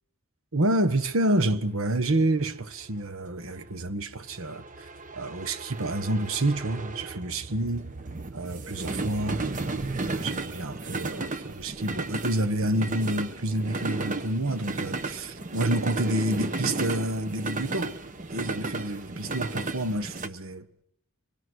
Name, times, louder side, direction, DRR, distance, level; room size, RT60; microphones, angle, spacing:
voice 1, 0.5-4.9 5.1-7.9 8.3-9.4 10.0-18.0 18.3-20.6, right 1 dB, 65° right, 1.3 m, -28 dB
sound 1, 0.8-20.3, right 3 dB, 35° right, 1.0 m, -34 dB
25.0 x 20.5 x 6.3 m
head